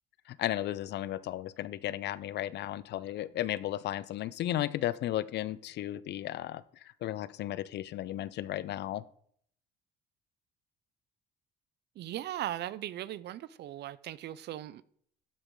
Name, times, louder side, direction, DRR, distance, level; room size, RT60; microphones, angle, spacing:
voice 1, 0.3-9.0, left 13 dB, 60° left, 0.5 m, -34 dB
voice 2, 12.0-14.8, right 13 dB, 60° right, 0.5 m, -38 dB
12.0 x 5.1 x 3.7 m
supercardioid pair, 85°, 20 cm